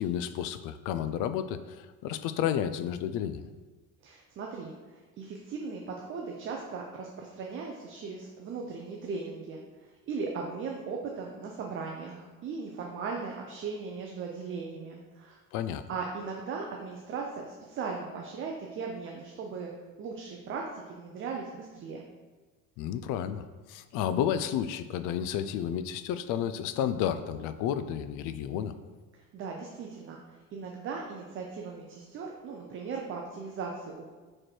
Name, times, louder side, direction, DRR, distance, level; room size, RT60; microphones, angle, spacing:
voice 1, 0.0-3.4 15.5-15.8 22.8-28.7, left 9 dB, 70° left, 12 dB, 0.5 m, -31 dB
voice 2, 4.0-15.4 15.9-19.7 20.0-22.1 29.1-34.1, right 4 dB, 40° right, 0 dB, 0.6 m, -38 dB
4.9 x 4.4 x 4.5 m, 1.3 s
cardioid pair, 150°, 32 cm